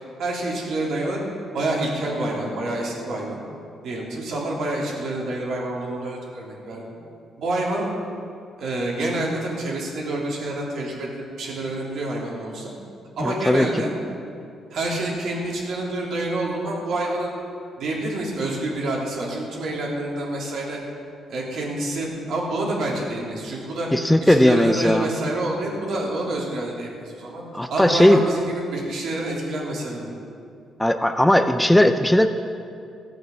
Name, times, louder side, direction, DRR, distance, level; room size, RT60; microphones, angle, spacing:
voice 1, 0.2-1.2 1.5-3.4 3.8-6.8 7.4-7.9 8.6-12.7 13.2-13.9 14.7-17.3 17.8-20.8 21.3-23.9 24.2-27.4 27.7-30.1, right 1 dB, 70° right, -3 dB, 3.3 m, -27 dB
voice 2, 13.2-13.7 23.9-25.1 27.5-28.2 30.8-32.3, left 1 dB, 5° left, 8 dB, 0.6 m, -17 dB
14.5 x 7.8 x 7.2 m, 2.5 s
cardioid pair, 90°, 0 cm